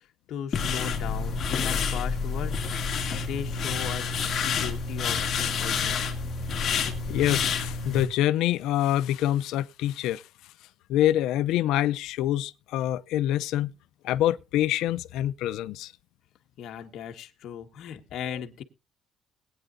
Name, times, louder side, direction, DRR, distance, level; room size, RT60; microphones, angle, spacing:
voice 1, 0.0-2.5 3.1-6.0 16.6-18.6, left 8 dB, 55° left, 1.5 m, -37 dB
sound 1, 0.5-8.0, left 5 dB, 35° left, 2.3 m, -28 dB
voice 2, 7.1-10.2 10.9-13.7 14.0-15.9, left 13 dB, 90° left, 0.5 m, -26 dB
21.0 x 9.1 x 2.6 m
cardioid pair, 180°, 0 cm